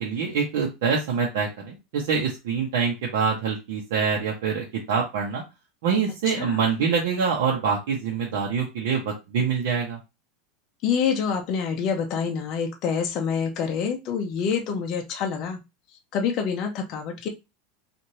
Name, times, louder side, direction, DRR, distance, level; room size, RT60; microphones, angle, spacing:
voice 1, 0.0-5.4 5.8-10.0, right 6 dB, 70° right, -2 dB, 0.9 m, -25 dB
voice 2, 6.3-6.6 10.8-15.6 16.1-17.3, left 6 dB, 35° left, 3 dB, 0.5 m, -26 dB
3.1 x 2.5 x 2.8 m, 0.24 s
supercardioid pair, 175°, 0 cm